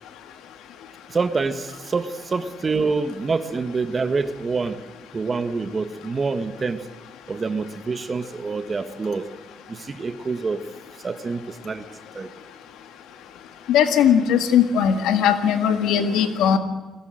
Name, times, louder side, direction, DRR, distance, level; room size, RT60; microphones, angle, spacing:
voice 1, 1.1-4.8 5.1-6.8 7.3-9.3 9.7-10.6 11.0-11.8 12.1-12.3, right 4 dB, 35° right, 11 dB, 1.5 m, -26 dB
voice 2, 13.7-16.6, left 8 dB, 85° left, 9 dB, 1.8 m, -19 dB
21.5 x 17.5 x 7.8 m, 1.2 s
cardioid pair, 90°, 0 cm